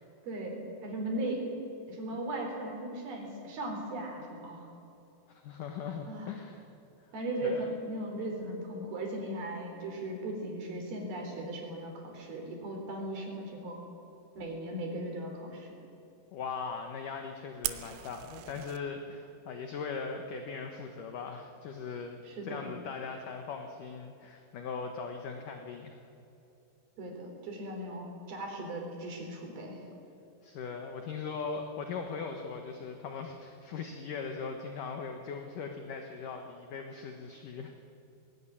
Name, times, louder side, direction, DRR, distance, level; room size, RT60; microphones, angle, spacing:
voice 1, 0.2-1.4 1.9-4.7 6.1-6.3 7.1-13.8 14.4-15.7 22.3-22.7 27.0-29.8, right 1 dB, 65° right, 1 dB, 5.8 m, -37 dB
voice 2, 5.3-6.7 7.4-7.7 16.3-26.1 30.4-37.9, left 5 dB, 60° left, 4 dB, 2.5 m, -40 dB
Fire, 17.6-18.8, right 14 dB, 85° right, 3.0 m, -38 dB
20.5 x 18.0 x 10.0 m, 2.8 s
omnidirectional pair, 4.8 m